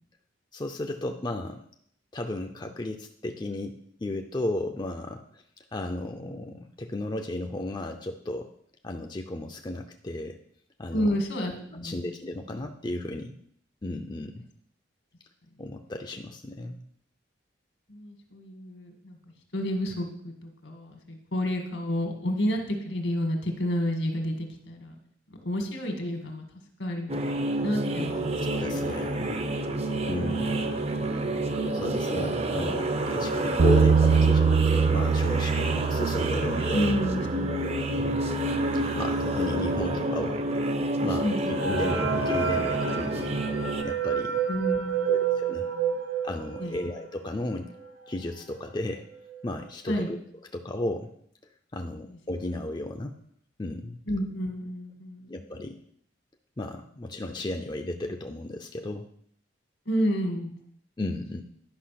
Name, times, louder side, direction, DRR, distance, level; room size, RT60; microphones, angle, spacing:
voice 1, 0.5-1.6 2.1-5.4 5.7-8.5 8.8-10.4 10.8-11.1 11.7-13.4 13.8-14.4 15.6-16.8 28.4-29.5 30.1-30.6 31.7-36.9 37.6-38.2 38.9-40.4 41.0-43.4 43.8-44.4 45.0-45.7 46.2-47.7 48.1-49.0 49.4-50.2 50.5-51.1 51.7-53.2 53.6-54.0 55.3-55.8 56.6-59.1 61.0-61.4, left 1 dB, 25° left, 4 dB, 0.6 m, -34 dB
voice 2, 10.9-12.2 17.9-19.2 19.5-25.0 25.3-26.4 26.8-27.1 27.6-28.9 36.7-38.0 41.2-41.4 44.5-46.0 46.5-46.8 49.9-50.1 52.1-52.2 54.1-55.4 59.9-60.5, equal, 75° left, 4 dB, 1.9 m, -31 dB
sound 1, 27.1-43.8, right 1 dB, 35° right, 0.7 m, -29 dB
Bass guitar, 33.6-39.8, right 6 dB, 60° right, 0.4 m, -25 dB
Asoada eerie movement creaking waterphone, 41.6-47.0 47.4-47.5 47.7-47.9 48.6-48.7 49.1-49.4, right 7 dB, 80° right, 2.7 m, -29 dB
10.5 x 5.4 x 5.9 m, 0.65 s
head